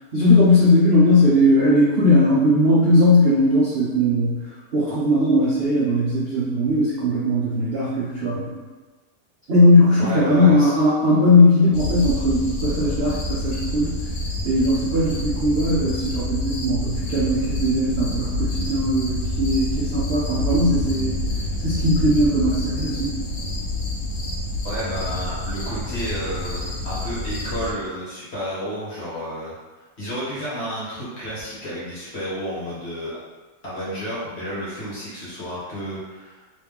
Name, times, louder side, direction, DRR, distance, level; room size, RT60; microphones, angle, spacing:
voice 1, 0.1-8.7 9.5-14.0 14.4-21.2 21.5-23.2, left 1 dB, 60° right, -7 dB, 0.6 m, -19 dB
voice 2, 10.0-10.8 24.6-33.1 33.6-36.4, equal, 40° left, -8 dB, 1.3 m, -31 dB
sound 1, 11.7-27.7, left 1 dB, 65° left, 0.7 m, -27 dB
3.2 x 3.2 x 3.5 m, 1.3 s
omnidirectional pair, 1.9 m